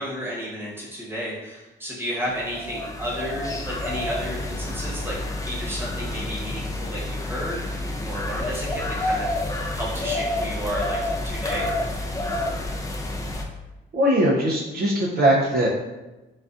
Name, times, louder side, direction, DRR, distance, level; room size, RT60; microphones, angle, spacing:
voice 1, 0.0-5.2 5.5-7.6 8.1-9.3 9.7-11.7, equal, 10° right, -6 dB, 1.1 m, -32 dB
sound 1, 2.3-13.4, left 1 dB, 15° left, 0.4 m, -29 dB
voice 2, 13.9-15.7, right 1 dB, 50° right, -5 dB, 0.6 m, -20 dB
3.9 x 2.3 x 2.5 m, 1.1 s
cardioid pair, 90°, 20 cm